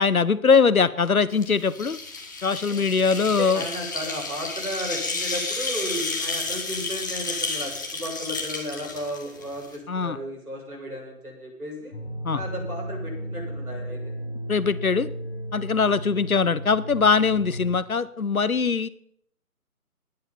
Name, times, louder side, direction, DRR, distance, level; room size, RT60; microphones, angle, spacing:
voice 1, 0.0-2.0 2.4-3.6 9.9-10.2 12.2-12.4 14.5-15.1 15.5-18.9, left 5 dB, 70° left, 17 dB, 0.9 m, -21 dB
sound 1, 1.3-9.8, left 3 dB, 15° left, 1.0 m, -31 dB
voice 2, 2.7-11.9 12.3-14.0, equal, 75° right, 0 dB, 7.9 m, -34 dB
sound 2, 11.9-17.7, right 1 dB, 45° left, 2.6 m, -34 dB
18.0 x 10.0 x 5.6 m, 0.67 s
figure-of-eight pair, 150°, 45 cm